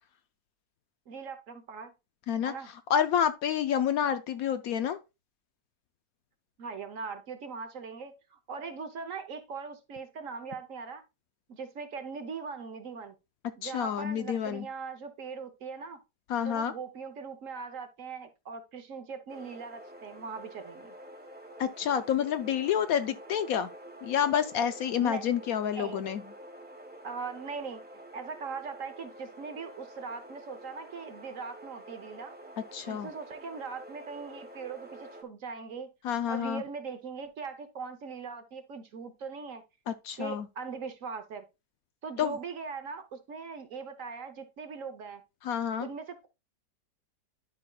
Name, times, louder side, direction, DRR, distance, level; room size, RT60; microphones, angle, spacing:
voice 1, 1.1-1.9 2.4-2.7 6.6-11.0 11.5-13.2 13.6-16.0 16.4-21.0 25.0-25.2 25.8-26.0 27.0-27.8 28.1-32.4 32.9-35.9 36.3-39.6 40.2-41.4 42.0-45.2 45.8-46.3, right 5 dB, 55° right, 1.1 m, -40 dB
voice 2, 2.9-5.0 13.6-14.7 16.3-16.7 21.6-23.7 24.0-26.2 32.7-33.1 36.0-36.6 39.9-40.5 42.2-42.3 45.4-45.9, left 9 dB, 70° left, 0.9 m, -28 dB
sound 1, 19.3-35.2, right 1 dB, 5° right, 1.0 m, -48 dB
11.5 x 5.1 x 2.3 m
omnidirectional pair, 1.8 m